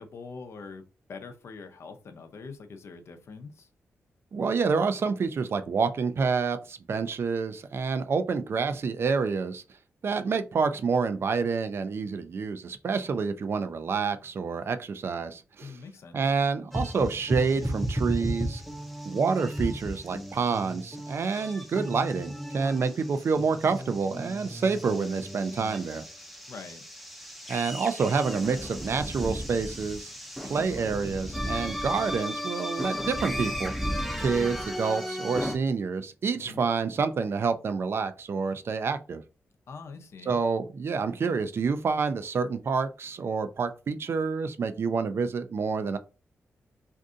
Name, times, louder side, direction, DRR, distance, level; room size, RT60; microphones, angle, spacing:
voice 1, 0.0-3.7 15.6-16.2 26.5-26.8 36.3-36.7 39.7-40.4, left 4 dB, 65° left, 0.6 m, -44 dB
voice 2, 4.3-9.6 10.0-15.8 16.1-18.6 19.1-26.0 27.5-30.1 30.4-33.7 34.2-39.2 40.3-46.0, right 5 dB, 55° right, 0.4 m, -28 dB
sound 1, 16.7-35.6, equal, ahead, 0.6 m, -35 dB
2.6 x 2.5 x 3.6 m
cardioid pair, 85°, 5 cm